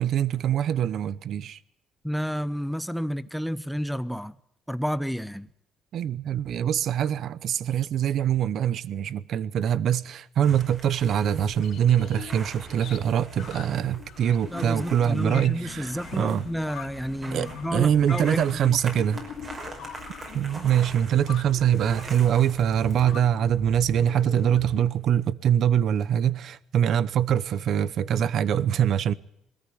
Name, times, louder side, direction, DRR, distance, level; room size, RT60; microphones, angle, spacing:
voice 1, 0.0-1.6 5.9-16.5 17.3-19.2 20.3-29.1, right 9 dB, 55° right, 0.8 m, -24 dB
voice 2, 2.0-4.3 4.7-5.5 14.5-18.8, equal, ahead, 0.8 m, -30 dB
sound 1, 10.4-23.0, right 2 dB, 30° right, 5.6 m, -44 dB
sound 2, 11.5-24.8, left 8 dB, 60° left, 2.6 m, -42 dB
21.5 x 14.0 x 9.5 m
cardioid pair, 130°, 0 cm